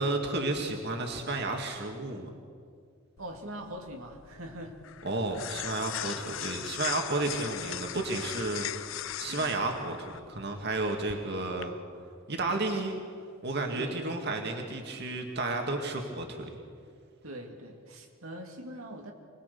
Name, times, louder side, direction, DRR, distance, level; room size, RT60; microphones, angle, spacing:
voice 1, 0.0-2.3 5.0-11.8 12.3-13.0 13.4-16.5, right 2 dB, 50° right, 3 dB, 2.2 m, -32 dB
sound 1, 3.2-11.6, left 12 dB, 65° left, 0.5 m, -39 dB
voice 2, 3.2-4.8 6.1-6.2 7.2-7.4 9.3-9.5 12.3-12.5 13.7-14.3 17.2-19.1, right 1 dB, 90° right, 2 dB, 2.5 m, -43 dB
25.0 x 19.5 x 6.9 m, 2.2 s
head